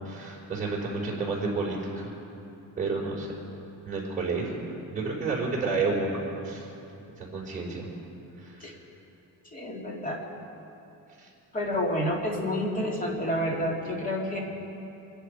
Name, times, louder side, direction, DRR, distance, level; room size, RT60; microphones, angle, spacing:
voice 1, 0.0-2.1 2.8-3.3 3.9-4.6 4.9-6.7 7.2-7.9 8.4-8.8 11.2-11.3, right 3 dB, 25° right, -5 dB, 4.3 m, -30 dB
voice 2, 9.5-10.2 11.5-14.4, left 1 dB, 25° left, -1 dB, 2.3 m, -29 dB
25.5 x 10.5 x 5.1 m, 2.8 s
cardioid pair, 170°, 34 cm